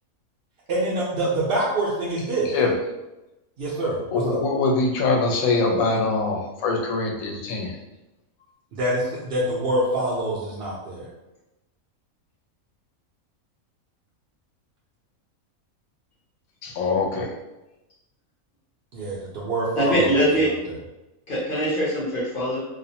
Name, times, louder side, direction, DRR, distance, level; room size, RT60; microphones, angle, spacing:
voice 1, 0.7-2.5 3.6-4.4 8.7-11.1 18.9-20.8, right 1 dB, 70° right, -6 dB, 0.5 m, -26 dB
voice 2, 4.1-7.7 16.6-17.3, left 3 dB, 75° left, 0 dB, 1.0 m, -23 dB
voice 3, 19.8-20.5 21.3-22.6, equal, 50° left, -6 dB, 0.7 m, -22 dB
2.5 x 2.0 x 2.7 m, 0.98 s
omnidirectional pair, 1.5 m